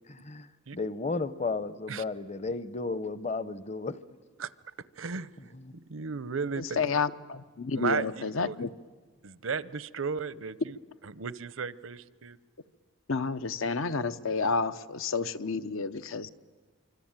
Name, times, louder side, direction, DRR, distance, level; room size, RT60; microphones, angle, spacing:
voice 1, 0.1-0.5 0.7-4.0 5.5-5.7, left 3 dB, 35° left, 15 dB, 0.8 m, -33 dB
voice 2, 5.0-5.5 5.9-6.8 7.7-8.1 8.4-8.6 9.2-10.8 11.0-12.4, right 5 dB, 80° right, 17 dB, 0.7 m, -34 dB
voice 3, 6.6-8.7 13.1-16.3, left 4 dB, 80° left, 13 dB, 0.8 m, -30 dB
25.5 x 25.0 x 8.9 m, 1.4 s
head